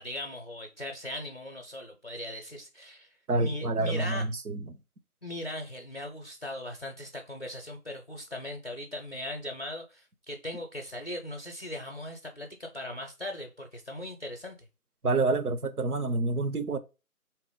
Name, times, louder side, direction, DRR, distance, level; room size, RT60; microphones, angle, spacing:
voice 1, 0.0-3.1 3.4-4.2 5.2-14.6, left 1 dB, 45° left, 0.5 m, -39 dB
voice 2, 3.3-4.6 15.0-16.8, right 3 dB, 85° right, 0.7 m, -28 dB
3.3 x 2.9 x 3.6 m
figure-of-eight pair, 160°, 44 cm